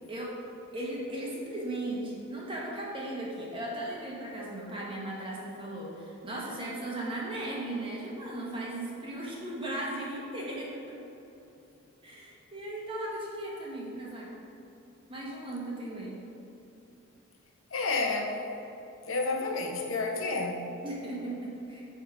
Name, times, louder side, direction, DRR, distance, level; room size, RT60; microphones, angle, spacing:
voice 1, 0.7-10.9 12.0-14.3 15.1-16.2 20.8-21.8, right 1 dB, 25° right, -4 dB, 1.2 m, -37 dB
voice 2, 17.7-18.4 19.1-20.7, left 3 dB, 75° left, 2 dB, 0.8 m, -30 dB
9.1 x 3.6 x 4.8 m, 2.9 s
head